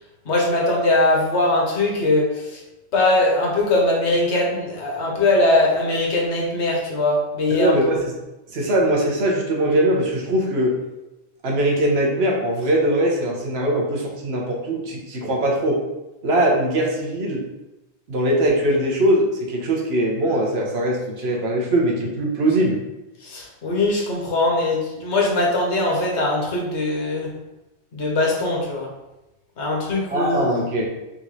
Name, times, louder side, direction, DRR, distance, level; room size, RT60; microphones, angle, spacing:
voice 1, 0.2-2.6 2.9-7.7 23.2-27.3 27.9-28.9 29.6-30.5, left 2 dB, 85° left, -1 dB, 1.3 m, -21 dB
voice 2, 7.6-8.0 8.5-10.7 11.4-15.8 16.2-17.4 18.1-22.8 30.1-31.0, right 1 dB, 70° right, -2 dB, 1.2 m, -21 dB
3.7 x 3.0 x 3.9 m, 0.98 s
omnidirectional pair, 1.1 m